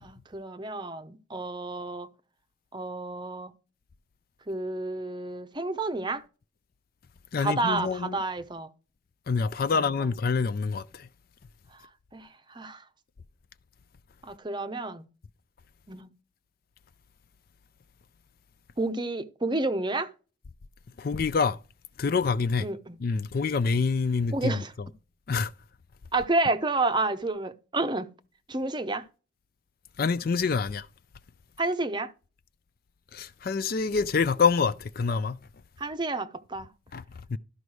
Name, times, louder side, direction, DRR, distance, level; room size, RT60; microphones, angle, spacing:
voice 1, 0.0-2.1 2.7-3.5 4.5-6.2 7.4-8.7 9.7-9.9 12.1-12.8 14.2-15.0 15.9-16.1 18.8-20.1 22.6-23.0 24.3-24.7 26.1-28.1 28.5-29.0 31.6-32.1 35.8-36.7, right 2 dB, 20° right, 0.7 m, -30 dB
voice 2, 7.3-8.2 9.3-11.1 21.0-21.6 22.0-22.7 23.0-24.6 25.3-25.5 30.0-30.9 33.1-35.4 36.9-37.0 37.3-37.4, left 5 dB, 45° left, 0.4 m, -26 dB
12.5 x 5.2 x 4.7 m
head